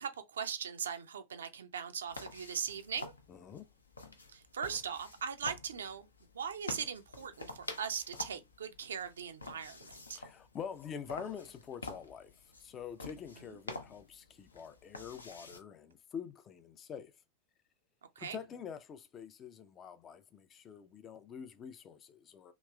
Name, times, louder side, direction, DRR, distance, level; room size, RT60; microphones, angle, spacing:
voice 1, 0.0-3.1 4.3-6.1 6.3-10.2 13.5-13.6 18.2-18.4, right 7 dB, 65° right, 0.4 m, -40 dB
sound 1, 2.1-15.6, left 2 dB, 75° left, 0.5 m, -49 dB
voice 2, 3.3-3.7 10.1-12.3 12.6-17.1 18.2-22.5, left 7 dB, 25° left, 0.4 m, -46 dB
3.0 x 2.9 x 2.3 m
figure-of-eight pair, 90°, 0 cm